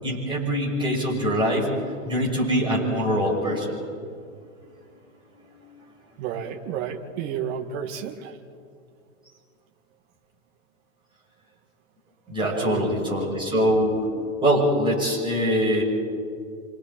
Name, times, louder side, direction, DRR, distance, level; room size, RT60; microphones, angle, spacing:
voice 1, 0.0-3.8 12.3-14.0 14.4-15.8, equal, 10° right, -4 dB, 6.7 m, -23 dB
voice 2, 6.2-8.4 12.4-12.9, right 8 dB, 45° right, 5 dB, 2.1 m, -31 dB
29.0 x 26.0 x 4.4 m, 2.3 s
hypercardioid pair, 135°, 43 cm